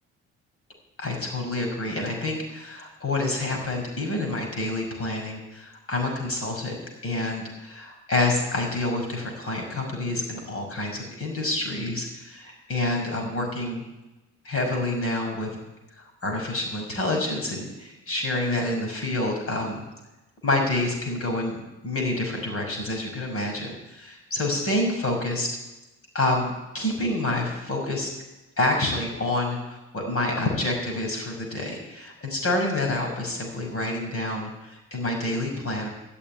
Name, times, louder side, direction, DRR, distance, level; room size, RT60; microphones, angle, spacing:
voice 1, 1.0-6.8 7.0-13.8 14.4-15.5 16.2-19.8 20.4-21.6 21.8-25.5 26.1-28.1 28.6-35.9, left 2 dB, 50° left, 2 dB, 5.8 m, -28 dB
14.5 x 7.1 x 9.8 m, 1.0 s
cardioid pair, 90°, 30 cm